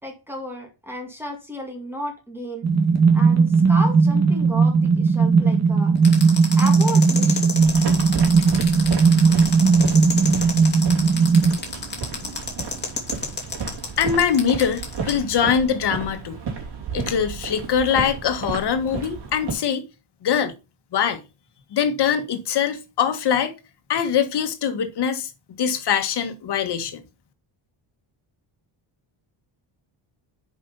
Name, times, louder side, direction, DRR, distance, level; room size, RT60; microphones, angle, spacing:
voice 1, 0.0-2.7 3.1-5.9 6.6-7.6, equal, 5° right, 2.0 m, -33 dB
sound 1, 2.6-11.5, right 5 dB, 35° right, 1.7 m, -17 dB
sound 2, 6.0-15.1, left 5 dB, 20° left, 2.7 m, -30 dB
sound 3, 7.6-19.5, right 5 dB, 55° right, 3.0 m, -33 dB
voice 2, 14.0-16.4 16.9-19.9 20.2-20.5 20.9-21.2 21.7-23.5 23.9-25.3 25.6-27.0, left 7 dB, 55° left, 1.6 m, -23 dB
7.6 x 5.5 x 5.4 m
wide cardioid pair, 170°, 47 cm